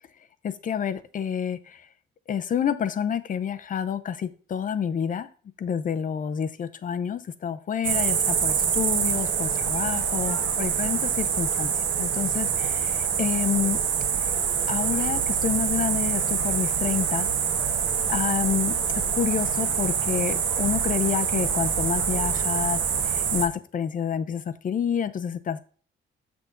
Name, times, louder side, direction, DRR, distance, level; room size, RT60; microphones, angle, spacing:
voice 1, 0.4-1.9 2.3-5.3 5.6-11.7 12.0-13.8 14.7-17.3 18.1-18.8 19.2-25.6, left 8 dB, 40° left, 11 dB, 0.6 m, -28 dB
sound 1, 7.8-23.5, right 7 dB, 65° right, 1.3 m, -25 dB
7.1 x 6.1 x 3.8 m, 0.40 s
cardioid pair, 155°, 21 cm